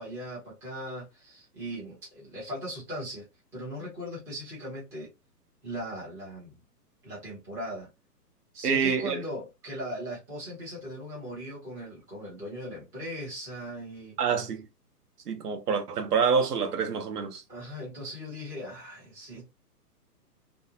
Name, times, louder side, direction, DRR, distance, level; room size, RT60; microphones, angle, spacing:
voice 1, 0.0-3.3 3.5-5.1 5.6-6.6 7.0-7.9 8.5-14.2 17.5-19.5, equal, 5° right, 0.6 m, -39 dB
voice 2, 8.6-9.2 14.2-14.7 15.3-17.4, right 6 dB, 70° right, 0.8 m, -27 dB
2.5 x 2.0 x 2.7 m
figure-of-eight pair, 130°, 48 cm